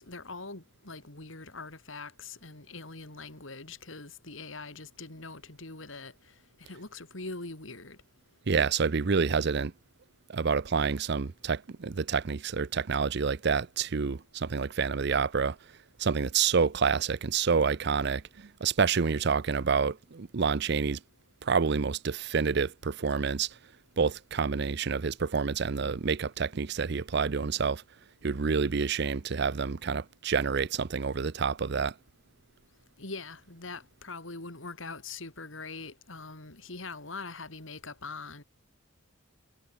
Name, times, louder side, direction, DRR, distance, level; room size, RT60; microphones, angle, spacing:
voice 1, 0.0-6.1 6.7-8.0 33.0-38.4, left 3 dB, 70° left, 3.5 m, -42 dB
voice 2, 8.5-9.7 10.3-15.6 16.0-21.0 21.4-23.5 24.0-27.8 28.2-31.9, right 5 dB, 55° right, 0.6 m, -28 dB
head